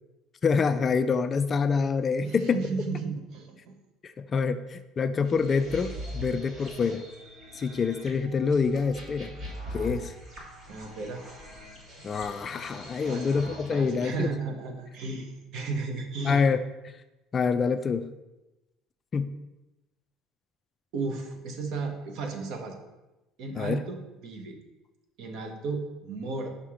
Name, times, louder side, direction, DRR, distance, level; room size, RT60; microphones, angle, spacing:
voice 1, 0.4-2.6 4.0-7.0 7.5-9.3 9.7-10.1 12.0-14.3 16.3-16.6 17.3-18.1 19.1-19.3 23.6-23.8, left 5 dB, 30° left, 11 dB, 0.3 m, -26 dB
voice 2, 2.2-3.7 10.7-11.2 13.0-13.4 13.7-16.4 20.9-22.8 23.4-24.6 25.2-26.5, right 4 dB, 60° right, 4 dB, 1.2 m, -34 dB
sound 1, 5.2-14.0, equal, 40° right, 2.1 m, -42 dB
5.8 x 5.6 x 4.9 m, 1.0 s
cardioid pair, 145°, 0 cm